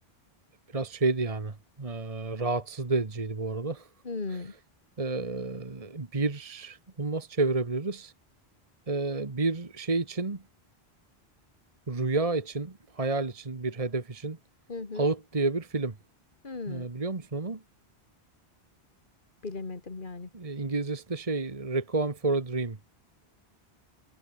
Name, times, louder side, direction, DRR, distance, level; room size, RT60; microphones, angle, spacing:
voice 1, 0.7-3.9 4.3-4.6 5.0-8.1 8.9-10.4 11.9-14.4 14.9-16.0 16.7-17.6 20.3-22.8, right 3 dB, 35° right, 1.5 m, -30 dB
voice 2, 4.1-4.5 14.7-15.0 16.4-16.9 19.4-20.3, left 3 dB, 50° left, 2.2 m, -36 dB
omnidirectional pair, 1.1 m